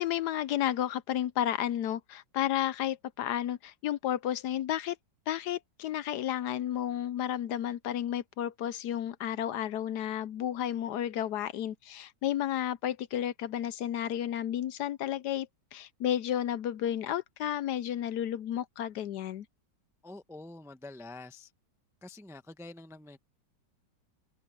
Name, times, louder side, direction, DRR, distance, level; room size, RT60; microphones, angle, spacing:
voice 1, 0.0-5.0 5.3-15.5 15.7-19.4, left 11 dB, 70° left, 1.1 m, -32 dB
voice 2, 20.0-21.5 22.0-23.2, left 2 dB, 5° right, 0.5 m, -46 dB
omnidirectional pair, 2.0 m